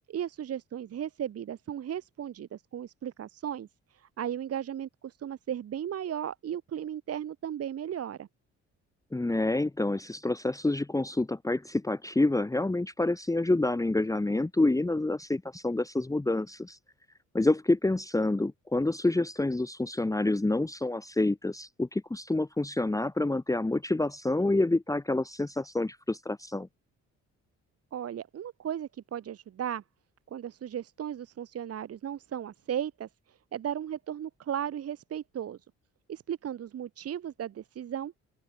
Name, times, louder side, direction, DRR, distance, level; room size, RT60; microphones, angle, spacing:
voice 1, 0.1-3.7 3.9-8.3 27.9-29.8 30.3-33.1 33.5-35.6 36.1-38.1, right 9 dB, 50° right, 1.1 m, -36 dB
voice 2, 9.1-16.8 17.3-26.7, left 2 dB, 10° left, 1.2 m, -28 dB
open air
cardioid pair, 90°, 30 cm